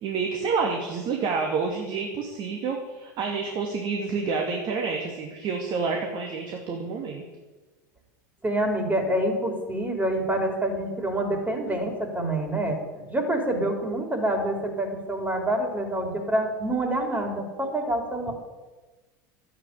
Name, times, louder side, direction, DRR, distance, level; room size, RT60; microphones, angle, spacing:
voice 1, 0.0-7.2, right 4 dB, 45° right, 1 dB, 2.4 m, -28 dB
voice 2, 8.4-18.3, right 1 dB, 15° right, 3 dB, 4.2 m, -27 dB
13.0 x 8.7 x 8.5 m, 1.2 s
hypercardioid pair, 85°, 10 cm